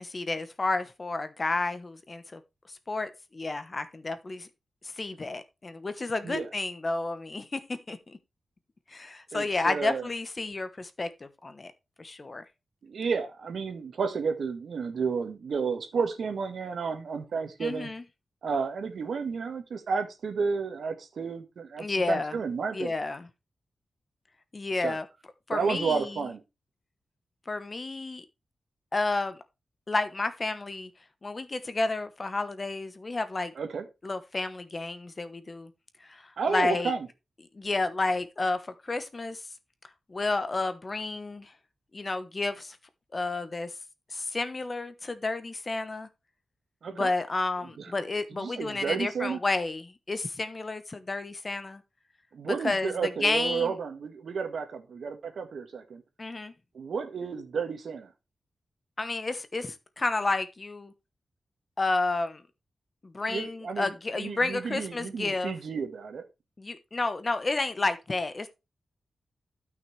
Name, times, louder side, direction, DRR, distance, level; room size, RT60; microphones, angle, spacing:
voice 1, 0.0-2.4 2.9-4.5 5.0-8.2 8.9-11.7 12.0-12.4 17.6-18.0 21.8-22.4 22.7-23.3 24.5-25.0 25.5-26.2 27.5-28.2 28.9-29.4 29.9-30.9 31.2-33.5 34.0-35.7 36.0-36.9 37.5-39.4 40.1-41.5 41.9-42.8 43.1-43.7 44.1-46.1 46.9-51.8 52.4-53.7 56.2-56.5 59.0-60.9 61.8-62.4 63.0-65.5 66.6-68.5, left 3 dB, 35° left, 1.0 m, -31 dB
voice 2, 9.3-10.1 12.8-17.9 18.4-22.9 24.8-25.0 25.5-26.4 33.5-33.8 36.4-37.1 46.8-47.1 48.4-49.4 52.3-56.0 56.7-58.1 63.3-66.2, right 5 dB, 75° right, 1.7 m, -31 dB
12.5 x 6.0 x 3.3 m
wide cardioid pair, 110°, 0 cm